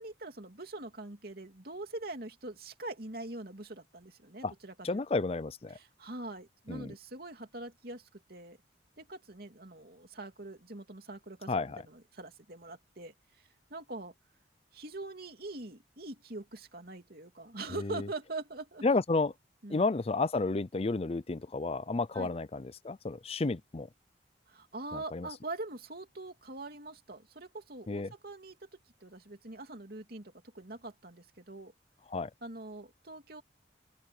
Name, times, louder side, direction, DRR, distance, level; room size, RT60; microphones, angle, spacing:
voice 1, 0.0-5.0 5.7-8.6 9.0-13.1 13.7-14.1 14.7-18.8 19.6-19.8 22.1-22.3 24.5-28.7 29.0-31.7 32.4-33.4, right 2 dB, 55° right, 2.9 m, -43 dB
voice 2, 4.8-5.8 6.7-6.9 11.5-11.8 17.8-18.1 18.8-19.3 19.7-23.9 24.9-25.3 27.9-28.1 32.1-32.3, left 3 dB, 35° left, 0.5 m, -31 dB
open air
head